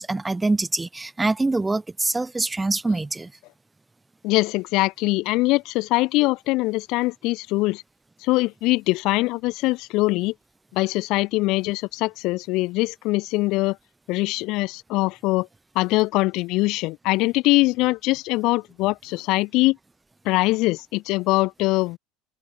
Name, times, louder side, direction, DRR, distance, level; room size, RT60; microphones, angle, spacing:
voice 1, 0.0-3.3, right 2 dB, 15° right, 0.4 m, -24 dB
voice 2, 4.2-7.8 8.2-10.3 10.7-13.8 14.1-15.5 15.8-19.8 20.3-22.0, left 21 dB, 60° left, 0.6 m, -22 dB
open air
hypercardioid pair, 70°, 0 cm